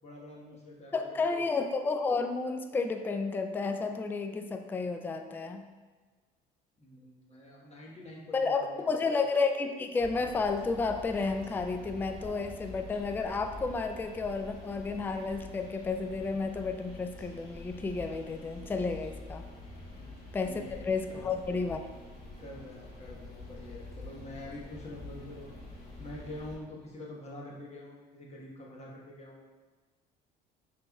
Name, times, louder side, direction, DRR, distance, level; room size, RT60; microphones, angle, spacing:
voice 1, 0.0-1.6 6.8-9.2 19.9-20.2 20.4-20.8 21.1-21.3 21.7-21.8 22.4-25.5 26.0-29.4, left 1 dB, 30° left, -3 dB, 1.3 m, -46 dB
voice 2, 0.9-5.7 8.3-19.4 20.3-21.8, left 4 dB, 10° left, 6 dB, 0.3 m, -31 dB
sound 1, 10.0-26.6, left 2 dB, 45° left, 1.4 m, -46 dB
5.8 x 3.3 x 2.3 m, 1.4 s
supercardioid pair, 75°, 21 cm